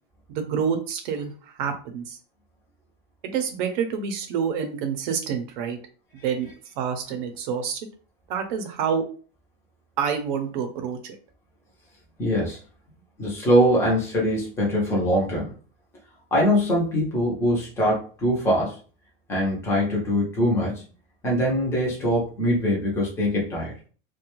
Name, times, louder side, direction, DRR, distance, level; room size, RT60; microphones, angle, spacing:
voice 1, 0.3-2.2 3.2-5.8 6.2-6.5 6.8-7.8 8.3-9.0 10.0-11.2, right 7 dB, 55° right, 6 dB, 0.6 m, -27 dB
voice 2, 12.2-12.6 13.2-15.5 16.3-18.7 19.3-20.8 21.2-23.8, equal, 10° left, -4 dB, 0.6 m, -22 dB
2.4 x 2.2 x 3.0 m, 0.39 s
supercardioid pair, 180°, 30 cm